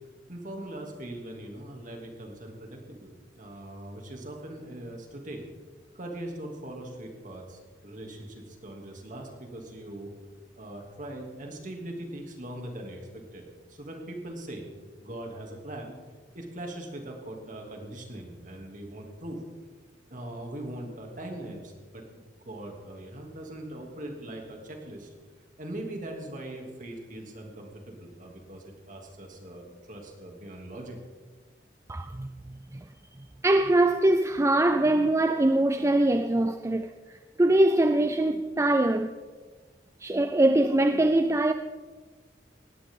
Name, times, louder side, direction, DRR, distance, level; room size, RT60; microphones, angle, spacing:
voice 1, 0.3-5.5 5.9-10.1 10.6-14.7 15.0-15.9 16.3-19.4 20.1-25.1 25.6-31.0, right 1 dB, 45° right, 2.8 m, -41 dB
voice 2, 31.9-32.3 32.7-32.8 33.4-39.2 40.0-41.5, right 1 dB, 15° right, 0.4 m, -23 dB
19.5 x 15.5 x 3.8 m
head